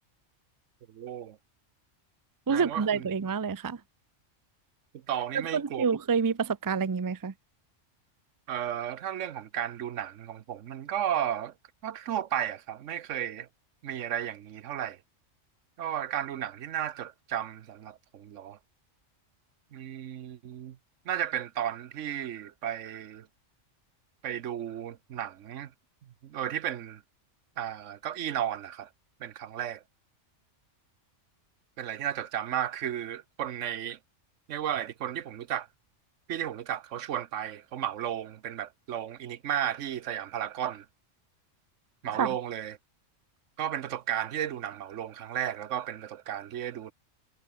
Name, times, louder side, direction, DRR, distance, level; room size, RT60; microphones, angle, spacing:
voice 1, 0.9-1.4 2.5-3.1 5.1-5.9 8.5-11.5 11.8-13.5 13.8-15.0 15.8-18.6 19.7-20.8 21.1-23.3 24.2-25.7 26.2-27.0 27.6-28.9 29.2-29.8 31.8-34.0 34.5-35.7 36.3-40.9 42.0-42.8 43.6-46.9, right 10 dB, 80° right, 1.1 m, -34 dB
voice 2, 2.5-3.8 5.5-7.3 42.1-42.3, right 6 dB, 30° right, 0.4 m, -28 dB
omnidirectional pair, 1.3 m